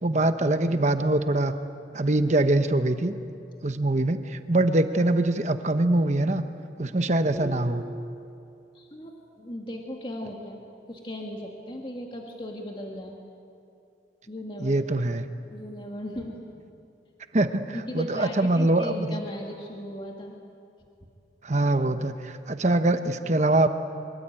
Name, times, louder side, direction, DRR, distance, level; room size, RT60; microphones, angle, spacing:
voice 1, 0.0-1.5 1.9-3.1 3.6-6.4 6.8-7.8 14.6-15.2 17.3-17.6 17.9-19.2 21.4-23.7, right 2 dB, 40° right, 9 dB, 1.0 m, -23 dB
sound 1, 7.3-9.0, left 1 dB, 45° left, 4.2 m, -42 dB
voice 2, 8.7-10.6 10.9-13.2 14.3-14.8 15.5-16.6 17.7-20.3, left 1 dB, 30° left, 0 dB, 2.1 m, -37 dB
24.5 x 23.0 x 9.0 m, 2.5 s
head